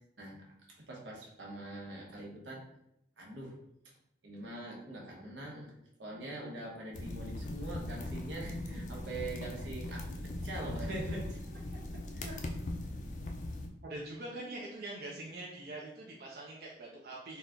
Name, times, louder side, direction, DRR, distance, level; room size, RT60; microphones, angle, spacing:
voice 1, 0.7-2.6 3.2-3.5 4.2-5.7 6.0-10.1 10.4-12.4 14.4-14.5, right 1 dB, 80° right, -2 dB, 1.1 m, -43 dB
sound 1, 6.9-13.7, left 1 dB, 40° left, 0.4 m, -40 dB
voice 2, 13.8-17.4, right 2 dB, 55° right, -4 dB, 0.5 m, -43 dB
4.0 x 2.2 x 3.7 m, 0.81 s
head